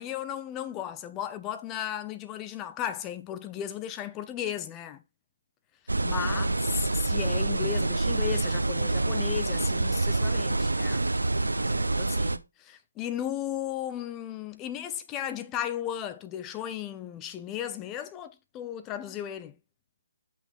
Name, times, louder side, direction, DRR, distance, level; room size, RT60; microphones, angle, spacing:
voice 1, 0.0-5.0 6.0-11.0 11.6-19.5, left 11 dB, 15° left, 0.7 m, -35 dB
sound 1, 5.9-12.4, right 2 dB, 80° right, 0.8 m, -27 dB
7.5 x 5.9 x 3.6 m
figure-of-eight pair, 150°, 0 cm